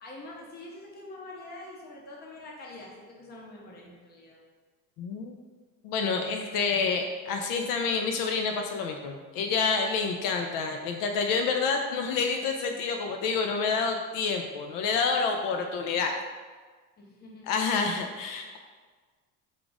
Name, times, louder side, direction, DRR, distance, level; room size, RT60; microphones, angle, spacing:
voice 1, 0.0-2.9 3.2-4.4 17.0-17.5, left 2 dB, 30° left, -2 dB, 0.7 m, -45 dB
voice 2, 5.0-5.4 5.8-16.1 17.5-18.6, left 5 dB, 75° left, 4 dB, 0.5 m, -28 dB
4.7 x 2.4 x 3.9 m, 1.5 s
cardioid pair, 170°, 34 cm